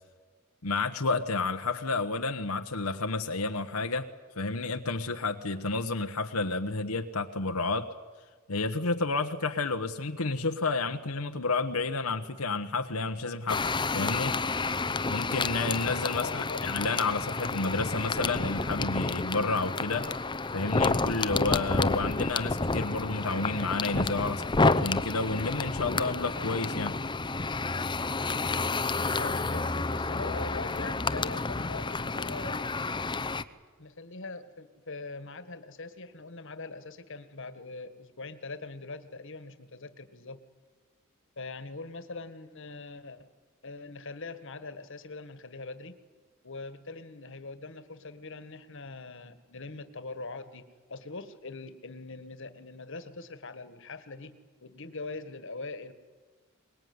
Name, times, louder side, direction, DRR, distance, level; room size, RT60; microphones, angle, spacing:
voice 1, 0.6-4.1 4.4-7.9 8.5-13.6 13.9-14.3 15.1-20.1 20.5-27.0, left 3 dB, 90° left, 5 dB, 1.2 m, -30 dB
sound 1, 13.5-33.4, left 3 dB, 20° left, 0.8 m, -30 dB
voice 2, 16.1-16.9 29.1-32.6 33.8-40.4 41.4-43.3 43.6-46.0 46.4-54.3 54.6-55.9, left 3 dB, 60° left, 11 dB, 1.7 m, -42 dB
23.5 x 21.0 x 9.6 m, 1.4 s
head